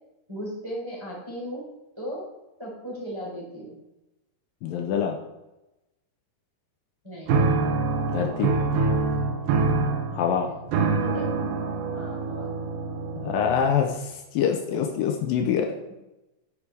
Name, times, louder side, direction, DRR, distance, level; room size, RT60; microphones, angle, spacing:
voice 1, 0.3-1.6 2.0-2.2 2.6-3.8 7.0-7.5 10.1-11.3 11.9-12.5, equal, 5° right, -6 dB, 3.6 m, -37 dB
voice 2, 4.6-5.2 8.1-8.5 10.1-10.5 13.2-15.7, left 7 dB, 80° left, 3 dB, 2.5 m, -25 dB
sound 1, 7.3-13.8, right 4 dB, 75° right, 2.7 m, -25 dB
9.6 x 9.4 x 3.5 m, 0.97 s
omnidirectional pair, 4.2 m